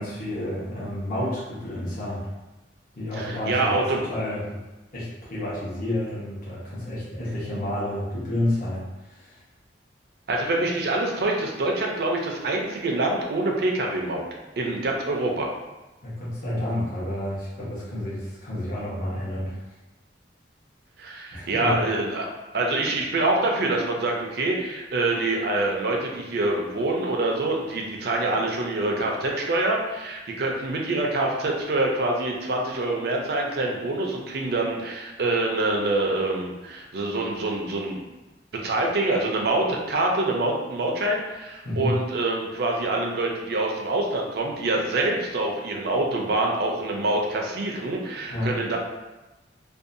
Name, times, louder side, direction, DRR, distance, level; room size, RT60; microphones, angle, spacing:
voice 1, 0.0-2.3 3.0-3.7 4.1-4.6 4.9-9.4 16.0-19.6 21.3-21.8 41.6-42.0 48.3-48.5, left 1 dB, 55° left, -9 dB, 0.8 m, -30 dB
voice 2, 3.2-4.0 10.3-14.2 14.6-15.5 21.0-22.3 22.5-38.0 38.5-48.8, right 2 dB, 65° right, 0 dB, 0.5 m, -25 dB
2.6 x 2.2 x 2.5 m, 1.1 s
head